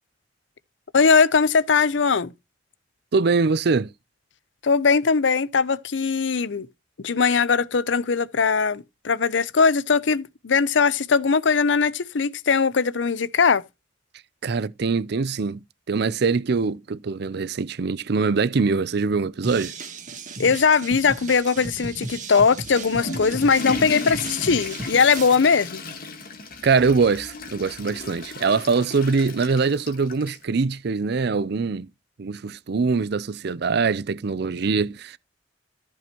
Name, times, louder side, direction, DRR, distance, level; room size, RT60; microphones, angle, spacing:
voice 1, 0.9-2.3 4.6-6.7 7.0-13.6 20.4-25.8, left 5 dB, 75° left, 0.6 m, -20 dB
voice 2, 3.1-3.9 14.4-15.6 15.9-19.7 26.6-31.9 32.2-35.2, right 4 dB, 60° right, 0.5 m, -23 dB
sound 1, 19.4-25.3, right 2 dB, 45° right, 1.6 m, -35 dB
Water / Toilet flush, 22.6-30.4, left 3 dB, 50° left, 1.7 m, -35 dB
14.0 x 5.4 x 3.0 m
head